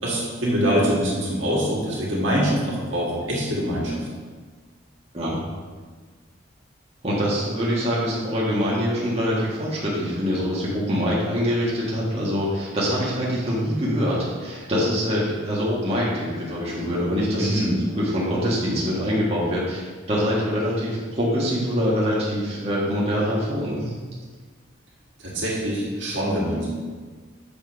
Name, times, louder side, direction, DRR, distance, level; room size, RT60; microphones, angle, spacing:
voice 1, 0.0-4.1 17.4-17.7 25.2-26.7, equal, 70° right, -5 dB, 2.2 m, -24 dB
voice 2, 7.0-23.9, equal, 30° right, -7 dB, 1.5 m, -24 dB
7.3 x 5.1 x 5.1 m, 1.5 s
head